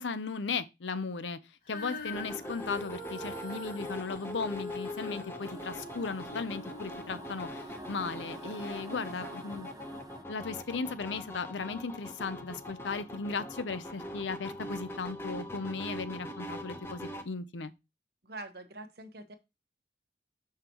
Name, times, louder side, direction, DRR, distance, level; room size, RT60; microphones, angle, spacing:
voice 1, 0.0-1.4 1.7-9.7 10.3-17.7, left 4 dB, 80° left, 0.7 m, -36 dB
Female singing, 1.7-8.0 8.7-8.8, left 3 dB, 50° left, 1.6 m, -43 dB
sound 1, 2.1-17.2, equal, 15° left, 0.9 m, -43 dB
sound 2, 5.4-10.2, right 2 dB, 20° right, 0.5 m, -48 dB
voice 2, 18.2-19.3, right 2 dB, 60° right, 1.1 m, -44 dB
6.7 x 5.8 x 3.0 m
head